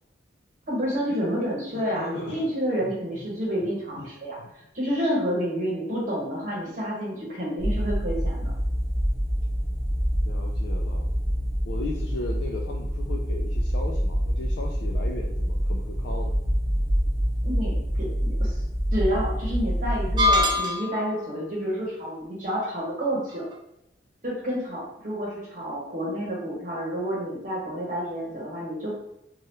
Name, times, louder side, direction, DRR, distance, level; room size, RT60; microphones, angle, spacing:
voice 1, 0.7-4.4 4.7-8.5 17.4-18.5 18.9-23.5 24.2-28.9, equal, 45° right, -5 dB, 0.9 m, -29 dB
voice 2, 1.7-2.5 2.8-2.9 4.0-4.1 4.4-4.5 10.2-11.1 11.7-16.4, left 2 dB, 70° left, 1 dB, 0.3 m, -37 dB
sound 1, 7.6-20.4, equal, 40° left, 1.4 m, -26 dB
sound 2, 20.2-21.2, left 2 dB, 25° right, 0.3 m, -22 dB
3.0 x 2.3 x 3.2 m, 0.82 s
head